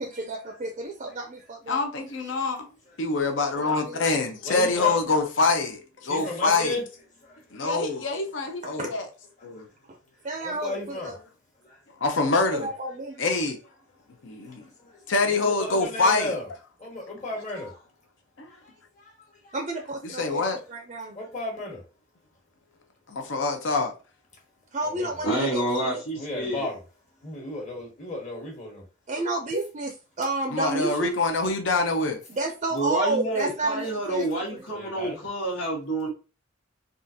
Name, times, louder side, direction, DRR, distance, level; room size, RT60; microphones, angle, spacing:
voice 1, 0.0-1.8 3.4-4.1 8.8-8.9 10.2-11.1 12.5-13.3 19.5-21.2 24.7-26.0 29.1-31.2 32.3-34.6, right 2 dB, 35° right, 0.5 m, -31 dB
voice 2, 1.7-2.6 3.0-6.8 7.5-9.1 9.4-9.6 12.0-12.7 13.2-13.6 14.2-14.6 15.1-16.3 18.4-18.5 20.0-20.6 23.1-23.9 30.5-32.2, left 3 dB, 70° left, 0.7 m, -25 dB
voice 3, 4.4-4.9 6.1-6.8 7.2-7.3 10.4-11.1 15.3-16.5 16.8-17.8 19.4-19.5 21.1-21.8 24.8-25.1 26.2-26.8 27.2-28.8 34.7-35.2, left 2 dB, 40° left, 1.3 m, -34 dB
voice 4, 25.2-26.7 32.7-36.1, right 1 dB, 90° left, 1.4 m, -28 dB
3.6 x 2.5 x 2.7 m
head